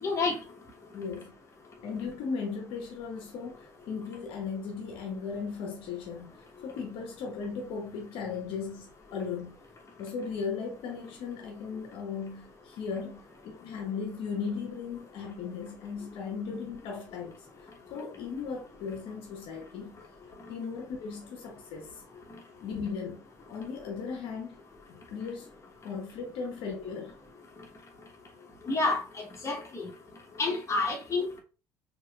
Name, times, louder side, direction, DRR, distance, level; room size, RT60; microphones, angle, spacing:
voice 1, 0.0-0.4 28.6-29.9 30.4-31.4, left 3 dB, 25° left, 1.2 m, -29 dB
voice 2, 0.9-1.3 1.8-6.3 6.6-9.6 10.0-17.4 17.9-20.0 20.5-22.0 22.6-23.2 23.5-24.6 24.9-25.5 25.8-27.1, left 5 dB, 55° left, 0.9 m, -37 dB
4.3 x 2.9 x 2.4 m
figure-of-eight pair, 55°, 11 cm